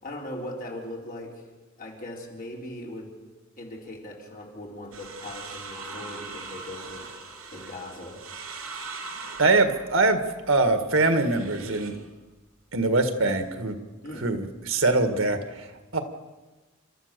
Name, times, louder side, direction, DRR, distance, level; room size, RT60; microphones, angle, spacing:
voice 1, 0.0-1.4 1.8-3.1 3.6-7.1 7.5-8.2 14.0-14.3, left 1 dB, 45° left, -1 dB, 4.1 m, -39 dB
sound 1, 4.9-12.0 13.0-13.6, right 4 dB, 90° right, 3.0 m, -41 dB
voice 2, 9.4-10.2 10.5-12.0 12.7-13.8 14.1-16.0, right 3 dB, 75° right, 8 dB, 1.8 m, -23 dB
30.0 x 13.5 x 6.8 m, 1.2 s
head